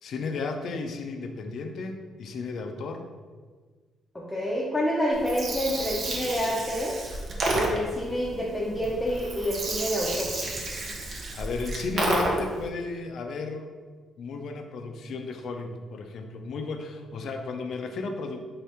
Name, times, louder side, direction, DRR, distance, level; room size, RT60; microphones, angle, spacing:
voice 1, 0.0-3.1 11.4-13.7 14.2-18.4, left 4 dB, 65° left, 5 dB, 0.4 m, -34 dB
voice 2, 4.1-6.9 7.5-10.3, equal, 15° left, -5 dB, 0.6 m, -28 dB
Gurgling, 5.1-12.6, right 2 dB, 55° right, 0.7 m, -31 dB
3.8 x 2.8 x 3.4 m, 1.5 s
cardioid pair, 90°, 0 cm